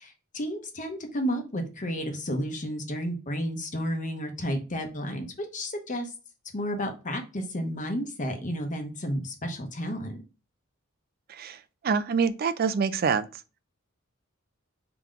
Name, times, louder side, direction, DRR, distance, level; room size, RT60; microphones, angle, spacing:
voice 1, 0.0-6.1 6.5-10.2, equal, 35° left, 0.9 m, -32 dB
voice 2, 11.8-13.3, right 5 dB, 45° right, 0.3 m, -25 dB
3.8 x 2.9 x 4.9 m
head